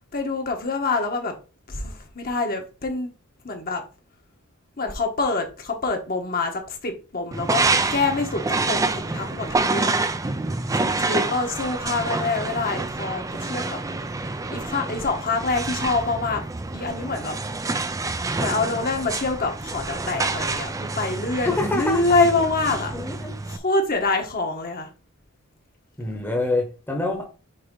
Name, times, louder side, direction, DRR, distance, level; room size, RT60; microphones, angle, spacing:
voice 1, 0.1-1.3 1.7-3.1 3.4-3.8 4.8-10.0 10.7-13.8 14.5-16.4 16.7-17.4 18.4-22.9 23.4-24.9, left 3 dB, 45° left, 1.3 m, -26 dB
sound 1, 7.3-23.6, right 3 dB, 15° right, 0.4 m, -27 dB
voice 2, 21.4-22.0 22.9-23.3 26.0-27.3, left 2 dB, 10° left, 1.1 m, -26 dB
6.6 x 2.8 x 5.3 m
head